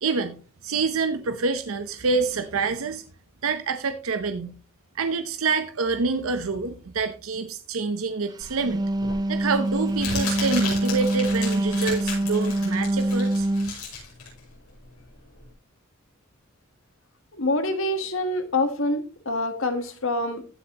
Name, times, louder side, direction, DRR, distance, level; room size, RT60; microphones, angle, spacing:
voice 1, 0.0-3.0 3.4-4.6 4.9-8.8 9.3-13.5, right 4 dB, 70° right, 9 dB, 0.7 m, -27 dB
Crumpling crinkling, 8.4-15.5, left 4 dB, 85° left, 5.9 m, -35 dB
Wind instrument woodwind instrument, 8.5-13.8, right 1 dB, 20° right, 0.4 m, -25 dB
voice 2, 17.3-20.4, left 2 dB, 65° left, 9 dB, 1.4 m, -26 dB
15.5 x 6.1 x 2.9 m, 0.36 s
head